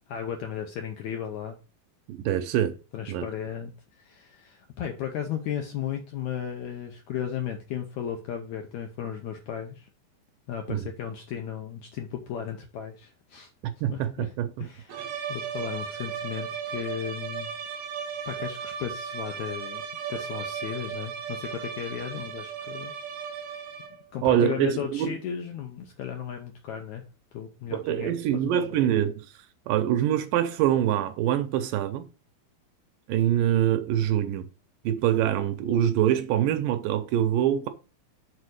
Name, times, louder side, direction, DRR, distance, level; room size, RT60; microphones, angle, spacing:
voice 1, 0.0-1.6 2.9-9.9 10.5-13.5 13.9-14.3 14.6-15.0 15.3-17.5 18.3-19.8 20.1-22.9 23.3-23.4 24.1-27.0 27.3-28.8, left 9 dB, 75° left, 1.7 m, -35 dB
voice 2, 2.1-2.8 3.1-3.3 10.7-10.8 13.6-14.7 24.2-25.1 27.7-29.3 29.7-32.1 33.1-34.5 34.9-37.7, right 11 dB, 80° right, 2.2 m, -24 dB
sound 1, 14.9-24.1, right 7 dB, 60° right, 1.5 m, -36 dB
6.8 x 4.1 x 6.4 m
omnidirectional pair, 4.2 m